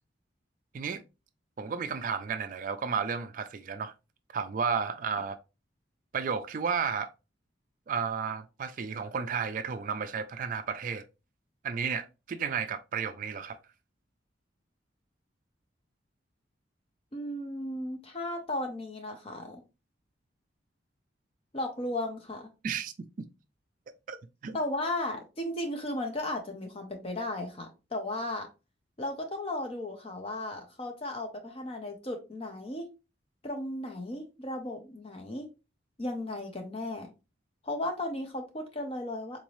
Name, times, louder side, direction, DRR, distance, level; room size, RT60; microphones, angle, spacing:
voice 1, 1.6-3.9 4.3-5.4 6.1-7.1 7.9-11.1 11.6-13.6 22.6-23.3 24.1-24.2 24.4-24.6, right 6 dB, 45° right, 0.3 m, -32 dB
voice 2, 17.1-19.6 21.5-22.5 24.5-28.5 29.0-32.9 33.4-35.5 36.0-37.1 37.6-39.4, left 1 dB, 30° left, 0.6 m, -35 dB
3.9 x 2.6 x 3.0 m
head